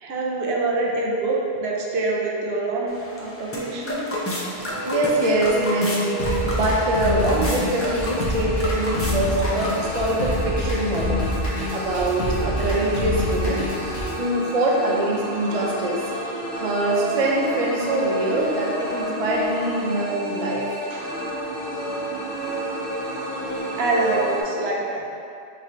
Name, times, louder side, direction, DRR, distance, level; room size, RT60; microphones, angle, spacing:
voice 1, 0.0-4.1 20.9-21.1 23.8-25.1, right 2 dB, 75° right, -2 dB, 0.9 m, -25 dB
sound 1, 2.9-10.0, left 1 dB, 20° left, 0.3 m, -30 dB
sound 2, 4.6-24.4, equal, 5° right, 1.1 m, -31 dB
voice 2, 4.6-13.8 14.2-20.7, right 1 dB, 45° right, -3 dB, 0.5 m, -24 dB
sound 3, 6.2-14.2, left 1 dB, 75° left, 1.0 m, -27 dB
5.1 x 2.7 x 3.1 m, 2.5 s
omnidirectional pair, 1.1 m